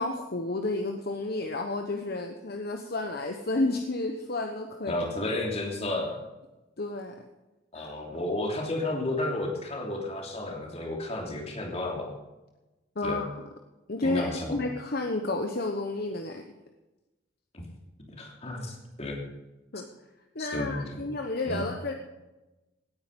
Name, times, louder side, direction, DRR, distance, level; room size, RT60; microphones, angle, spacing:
voice 1, 0.0-5.0 6.8-7.1 7.7-7.9 13.0-13.5 13.9-16.4 19.7-19.8 20.3-21.9, left 2 dB, 50° left, 4 dB, 1.1 m, -31 dB
voice 2, 4.9-6.2 7.7-12.1 13.0-13.2 14.0-14.6 17.5-17.6 18.1-19.2 20.4-21.0 21.5-21.7, left 1 dB, 30° left, 1 dB, 3.0 m, -32 dB
17.5 x 9.6 x 5.4 m, 1.1 s
head